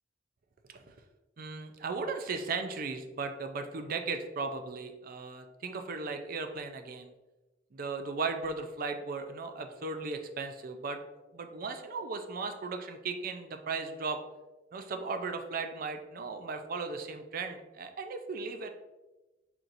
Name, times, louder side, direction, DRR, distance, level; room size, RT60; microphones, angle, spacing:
voice 1, 1.4-7.1 7.7-14.2 14.7-18.7, right 4 dB, 55° right, 6 dB, 0.5 m, -36 dB
4.4 x 4.0 x 2.6 m, 1.1 s
head